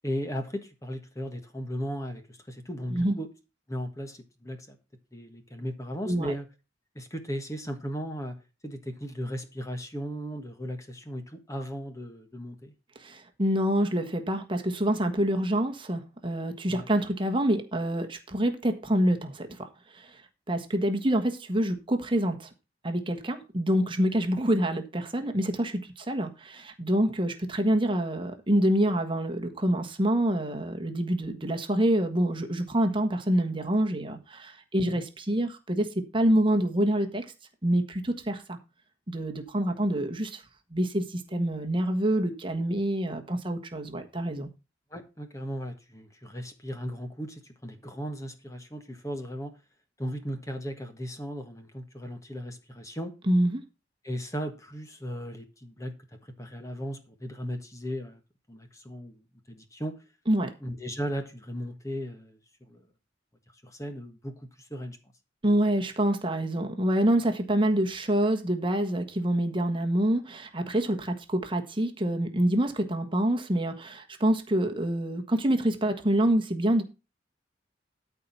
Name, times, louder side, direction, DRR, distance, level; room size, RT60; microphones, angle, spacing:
voice 1, 0.0-3.3 3.7-4.8 5.1-6.5 6.9-8.4 8.6-12.7 16.7-16.9 34.8-35.0 44.9-49.5 50.0-53.1 54.0-55.9 56.2-58.2 58.5-60.0 60.6-62.9 63.6-65.0, equal, 15° left, 1.4 m, -36 dB
voice 2, 13.0-20.2 20.5-22.5 22.8-37.2 37.6-38.6 39.1-40.4 40.7-44.5 53.3-53.6 60.3-60.5 65.4-76.8, right 1 dB, 25° right, 1.4 m, -26 dB
13.5 x 4.7 x 5.5 m
head